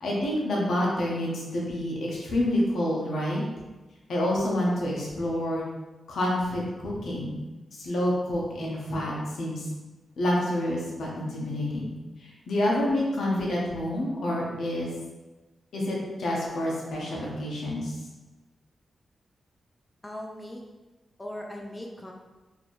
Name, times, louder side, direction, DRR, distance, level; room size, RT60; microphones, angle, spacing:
voice 1, 0.0-3.4 4.1-5.6 6.1-7.4 7.7-9.7 10.2-11.9 12.2-14.9 15.7-17.9, left 1 dB, 70° left, -3 dB, 1.0 m, -28 dB
voice 2, 20.0-20.6 21.2-22.1, left 1 dB, 15° left, 0 dB, 0.4 m, -38 dB
4.3 x 3.0 x 3.2 m, 1.2 s
wide cardioid pair, 145°, 0 cm